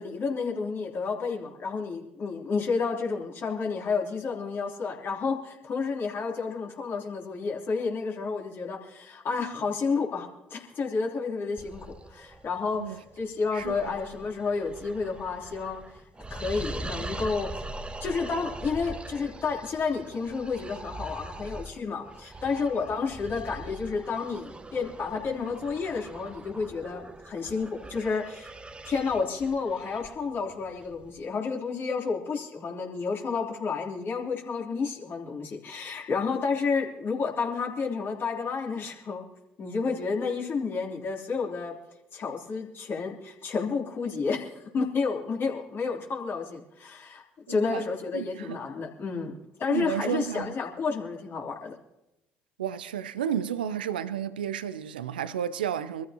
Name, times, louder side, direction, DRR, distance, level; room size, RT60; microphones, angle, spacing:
voice 1, 0.0-15.8 16.3-17.6 18.0-28.5 28.8-39.2 39.6-41.7 42.1-47.2 47.5-51.7, left 4 dB, 50° left, 3.2 m, -31 dB
sound 1, 11.6-31.2, right 2 dB, 20° right, 1.0 m, -42 dB
voice 2, 13.5-13.9 47.5-47.8 48.1-48.6 49.7-50.5 52.6-56.1, right 9 dB, 90° right, 0.5 m, -32 dB
24.5 x 14.0 x 2.9 m
hypercardioid pair, 55°, 5 cm